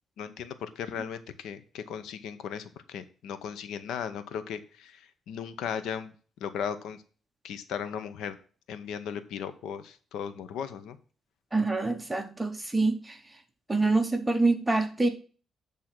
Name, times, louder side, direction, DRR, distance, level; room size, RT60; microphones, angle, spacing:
voice 1, 0.2-6.1 6.4-7.0 7.4-8.4 8.7-11.0, left 7 dB, 85° left, 12 dB, 0.7 m, -37 dB
voice 2, 11.5-13.2 13.7-15.1, right 3 dB, 10° right, 5 dB, 0.9 m, -26 dB
8.6 x 3.6 x 6.0 m, 0.39 s
cardioid pair, 150°, 0 cm